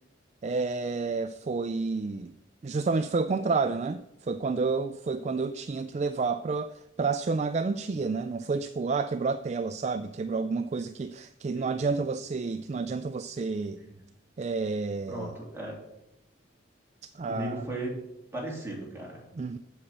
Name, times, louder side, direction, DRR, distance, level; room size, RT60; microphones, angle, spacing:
voice 1, 0.4-2.3 2.6-13.8 14.4-15.3 17.2-17.6 19.4-19.6, right 4 dB, 35° right, 0.3 m, -30 dB
voice 2, 11.5-11.9 13.8-14.0 15.1-15.8 17.2-17.9 18.3-19.2, right 1 dB, 15° right, 3.0 m, -37 dB
7.9 x 7.4 x 7.3 m
head